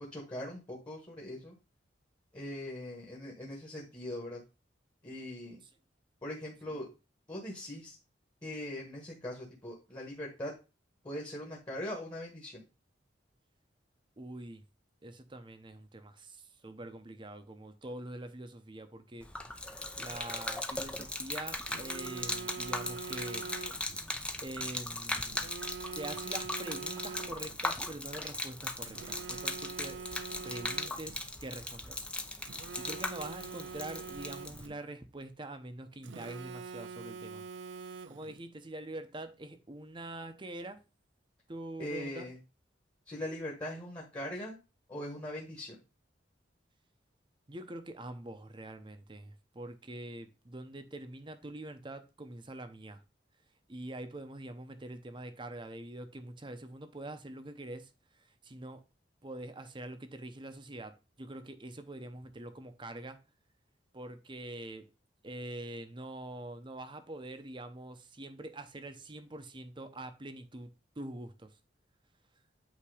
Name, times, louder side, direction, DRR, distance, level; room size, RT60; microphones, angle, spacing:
voice 1, 0.1-1.5 2.3-4.4 5.0-5.6 6.2-6.9 7.3-8.0 8.4-10.5 11.0-12.6 41.8-42.4 43.1-44.6 44.9-45.8, left 1 dB, 25° left, 1.4 m, -41 dB
voice 2, 14.2-14.6 15.0-19.3 20.0-23.4 24.4-25.5 25.9-30.0 30.4-32.0 32.4-37.4 38.1-40.8 41.5-42.3 47.5-53.0 53.7-57.9 58.4-58.8 59.2-63.2 63.9-64.9 65.2-70.7 71.0-71.5, right 1 dB, 25° right, 0.7 m, -44 dB
Gurgling / Liquid, 19.2-34.7, left 2 dB, 5° left, 0.5 m, -38 dB
Telephone, 21.7-24.0 25.3-27.6 28.9-31.2 32.4-34.8 36.0-38.4, right 5 dB, 80° right, 0.4 m, -44 dB
8.5 x 2.9 x 4.9 m
head